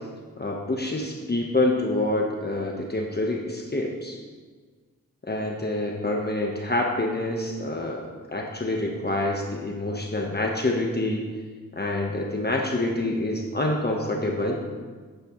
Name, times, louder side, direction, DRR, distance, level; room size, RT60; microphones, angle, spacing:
voice 1, 0.4-4.2 5.2-11.2 11.7-14.6, left 2 dB, 30° left, 1 dB, 1.2 m, -27 dB
10.0 x 9.8 x 3.1 m, 1.5 s
cardioid pair, 55°, 34 cm